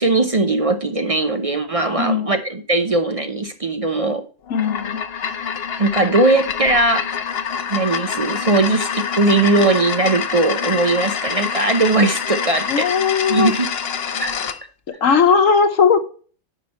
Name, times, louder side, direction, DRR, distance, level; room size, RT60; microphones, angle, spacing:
voice 1, 0.0-4.2 5.8-7.1 7.7-12.9 13.3-13.7 14.1-14.3, right 2 dB, 35° right, 7 dB, 0.7 m, -19 dB
voice 2, 2.0-2.3 4.5-5.0 12.7-13.5 14.9-16.0, left 5 dB, 90° left, 9 dB, 1.4 m, -17 dB
sound 1, 4.5-14.6, left 7 dB, 55° left, 0.9 m, -26 dB
10.0 x 5.1 x 4.2 m, 0.40 s
omnidirectional pair, 1.3 m